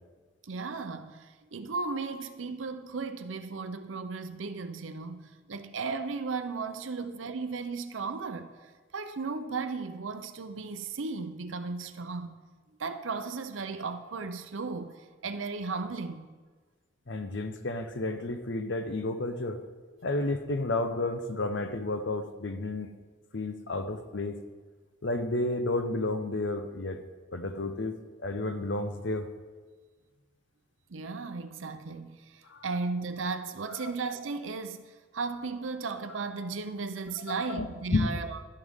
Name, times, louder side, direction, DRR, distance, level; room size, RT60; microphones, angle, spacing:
voice 1, 0.4-12.4 12.8-16.3 30.9-38.4, right 4 dB, 80° right, 0.6 m, -35 dB
voice 2, 17.1-19.6 20.0-22.9 23.3-24.4 25.0-27.0 27.3-27.9 28.2-29.3 32.5-32.6 33.8-33.9 37.3-38.1, left 2 dB, 65° left, 0.8 m, -31 dB
12.0 x 9.8 x 3.7 m
head